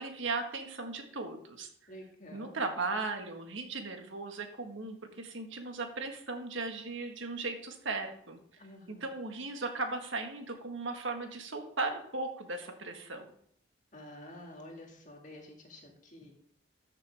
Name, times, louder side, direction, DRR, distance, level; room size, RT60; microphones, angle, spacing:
voice 1, 0.0-1.7 2.3-8.4 8.9-13.3, right 3 dB, 75° right, 5 dB, 1.5 m, -37 dB
voice 2, 1.9-2.6 8.6-9.0 13.9-16.3, left 1 dB, 40° left, 1 dB, 2.1 m, -49 dB
13.5 x 6.8 x 3.5 m, 0.64 s
head